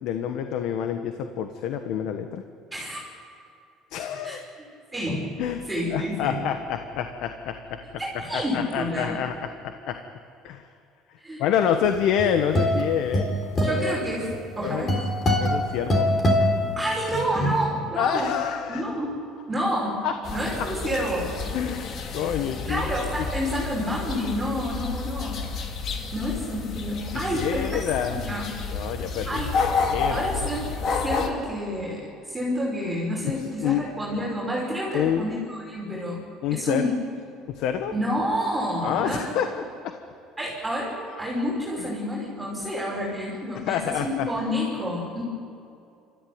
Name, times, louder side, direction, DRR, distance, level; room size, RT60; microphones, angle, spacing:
voice 1, 0.0-2.4 3.9-4.4 5.4-5.6 5.9-7.8 8.3-10.0 10.4-10.7 11.4-13.4 13.7-14.0 14.6-14.9 15.4-16.1 18.0-18.8 20.0-20.1 20.6-20.7 21.5-22.9 23.2-23.3 27.1-28.2 28.7-29.5 29.9-30.5 33.3-33.9 34.9-35.3 36.4-36.9 37.5-37.9 38.8-39.9 41.8-41.9 43.5-44.3, left 9 dB, 65° left, 7 dB, 1.2 m, -27 dB
voice 2, 4.2-5.3 5.7-6.4 8.0-9.2 11.2-11.4 13.6-14.3 14.6-15.0 16.8-18.3 18.7-19.2 19.5-20.0 20.3-21.3 22.6-25.4 26.1-27.8 28.1-28.5 29.3-29.5 30.1-36.2 36.5-36.9 37.9-39.3 40.4-45.2, equal, 10° right, -5 dB, 5.4 m, -29 dB
sound 1, 11.9-17.4, left 1 dB, 30° left, 3.8 m, -24 dB
sound 2, 20.2-31.3, left 5 dB, 45° left, 2.4 m, -30 dB
26.5 x 14.0 x 9.5 m, 2.5 s
cardioid pair, 130°, 0 cm